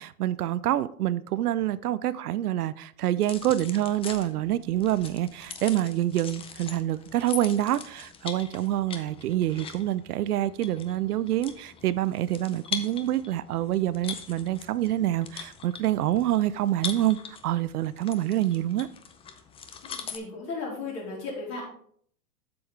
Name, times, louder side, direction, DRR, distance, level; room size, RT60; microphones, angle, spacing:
voice 1, 0.0-17.2 17.4-18.9, right 13 dB, 80° right, 0.5 m, -26 dB
sound 1, 3.2-20.2, left 7 dB, 15° left, 0.5 m, -42 dB
voice 2, 19.8-21.7, left 3 dB, 35° left, 3.8 m, -36 dB
7.9 x 7.0 x 3.4 m
hypercardioid pair, 110°, 44 cm